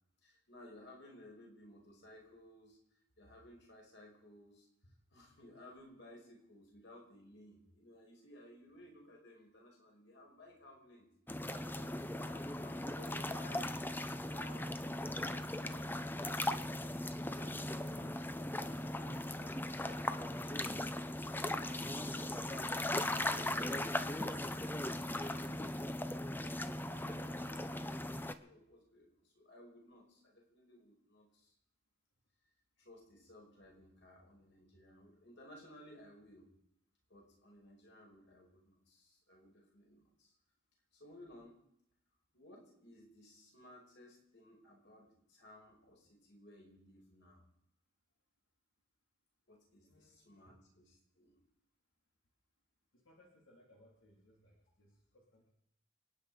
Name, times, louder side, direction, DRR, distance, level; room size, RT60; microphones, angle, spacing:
voice 1, 0.2-2.8 3.2-4.7 5.1-11.1 11.4-13.7 14.3-14.8 15.1-16.9 21.4-25.6 26.3-31.5 32.8-36.5 37.1-40.3 40.9-41.6 42.3-47.4 49.5-51.4, left 1 dB, 60° left, -1 dB, 5.6 m, -58 dB
sound 1, 11.3-28.3, left 1 dB, 10° left, 0.7 m, -38 dB
voice 2, 49.8-50.3 53.0-55.5, left 1 dB, 85° left, -2 dB, 3.4 m, -66 dB
28.5 x 9.7 x 5.1 m, 0.75 s
head